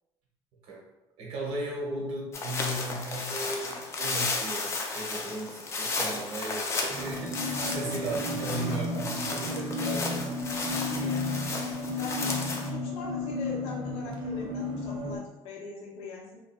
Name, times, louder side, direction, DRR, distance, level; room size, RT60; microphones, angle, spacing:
voice 1, 1.2-10.2, right 2 dB, 70° right, -3 dB, 0.9 m, -36 dB
sound 1, 2.3-12.7, left 3 dB, 30° left, 0.3 m, -34 dB
sound 2, 6.9-15.2, left 2 dB, 50° right, 0.4 m, -33 dB
voice 2, 12.0-12.3 12.7-16.4, left 3 dB, 85° left, -3 dB, 0.5 m, -41 dB
2.7 x 2.3 x 2.2 m, 0.98 s
cardioid pair, 145°, 10 cm